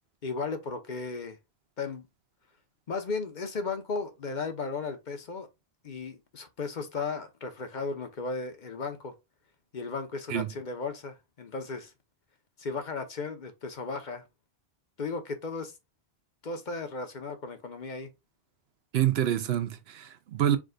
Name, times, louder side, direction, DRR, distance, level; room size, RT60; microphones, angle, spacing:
voice 1, 0.2-1.4 1.8-2.0 2.9-5.5 5.8-9.1 9.7-11.9 12.6-14.2 15.0-15.7 16.4-18.1, left 4 dB, 50° left, 0.8 m, -35 dB
voice 2, 18.9-20.6, right 11 dB, 80° right, 0.9 m, -27 dB
4.9 x 3.8 x 2.2 m
omnidirectional pair, 1.0 m